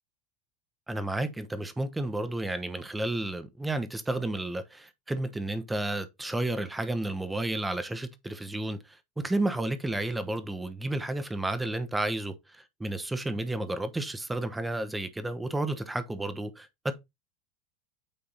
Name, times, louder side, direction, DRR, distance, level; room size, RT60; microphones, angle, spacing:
voice 1, 0.9-8.8 9.2-16.9, right 2 dB, 5° right, 1.0 m, -32 dB
8.8 x 3.6 x 4.1 m
supercardioid pair, 135°, 0 cm